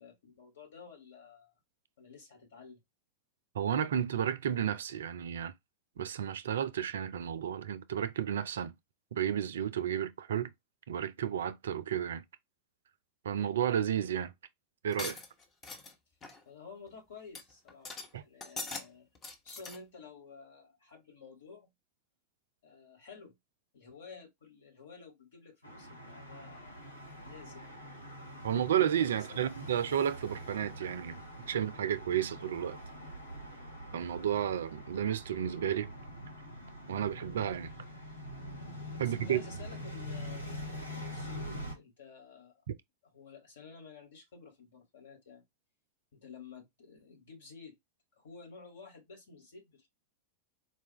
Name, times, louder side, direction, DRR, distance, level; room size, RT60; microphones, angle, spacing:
voice 1, 0.0-1.5 2.0-2.8 16.4-17.9 18.2-19.1 19.4-21.7 22.6-23.3 23.7-26.8 27.2-27.8 29.1-29.4 39.0-42.6 43.1-45.4 46.1-47.8 48.2-49.9, left 5 dB, 60° left, 1.6 m, -52 dB
voice 2, 3.5-5.5 6.0-8.8 9.1-10.5 10.9-12.2 13.2-14.3 14.8-15.2 18.1-18.2 28.4-31.2 31.5-32.8 33.9-35.9 36.9-37.7 39.0-39.4 42.7-42.8, right 9 dB, 65° right, 0.4 m, -32 dB
sound 1, 14.9-15.9 16.2-16.4 16.9-17.0 17.4-17.5 17.7-18.1 18.4-18.9 19.2-19.8, left 3 dB, 25° left, 0.9 m, -42 dB
sound 2, 25.6-41.7, equal, 85° left, 1.2 m, -44 dB
4.2 x 2.3 x 2.9 m
figure-of-eight pair, 90°, 0 cm